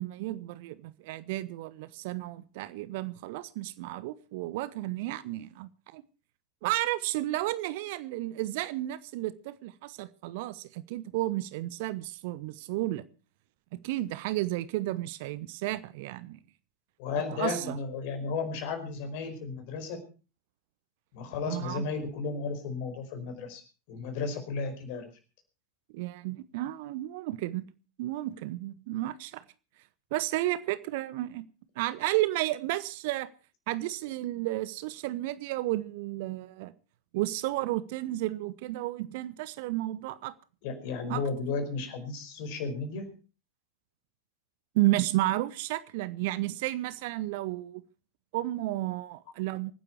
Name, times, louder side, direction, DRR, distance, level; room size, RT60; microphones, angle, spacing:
voice 1, 0.0-6.0 6.6-13.0 13.7-16.4 17.3-17.8 21.5-21.8 25.9-27.6 28.0-29.4 30.1-31.4 31.8-33.3 33.7-36.7 37.1-40.3 41.1-41.2 44.7-47.8 48.3-49.7, right 17 dB, 50° right, 0.9 m, -32 dB
voice 2, 17.0-20.0 21.1-23.6 23.9-25.1 40.6-43.1, left 4 dB, 45° left, 4.8 m, -34 dB
24.5 x 10.0 x 4.7 m
figure-of-eight pair, 90°, 0 cm